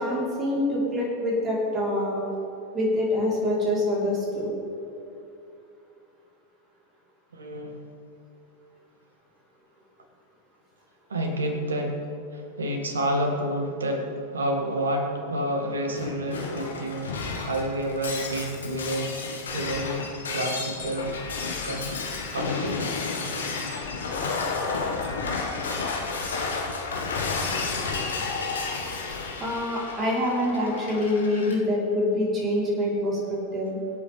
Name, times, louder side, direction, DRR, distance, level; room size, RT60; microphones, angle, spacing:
voice 1, 0.0-2.2 2.7-4.5 29.4-33.8, left 1 dB, 25° right, -5 dB, 3.5 m, -25 dB
voice 2, 7.3-7.8 11.1-12.1 12.3-17.1 17.5-19.2 19.5-21.2 21.6-21.9 22.3-22.9, right 1 dB, 70° right, 3 dB, 1.9 m, -29 dB
Shatter, 16.0-31.6, left 4 dB, 70° left, 1.5 m, -31 dB
24.0 x 8.6 x 3.4 m, 2.7 s
figure-of-eight pair, 90°, 0 cm